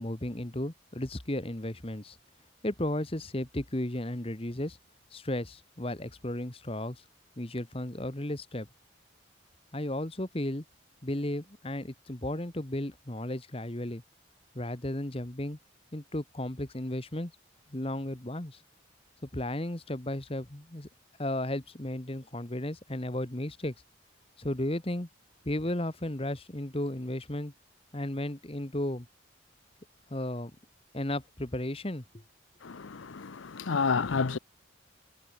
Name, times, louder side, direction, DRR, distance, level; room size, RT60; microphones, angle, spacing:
voice 1, 0.0-2.2 2.6-4.8 5.1-7.0 7.4-8.7 9.7-10.6 11.0-14.0 14.5-15.6 15.9-17.3 17.7-18.6 19.2-20.9 21.2-23.7 24.4-25.1 25.4-27.5 27.9-29.1 30.1-30.5 30.9-32.0, left 1 dB, 30° left, 1.5 m, -34 dB
voice 2, 32.6-34.4, left 5 dB, 80° left, 0.7 m, -30 dB
head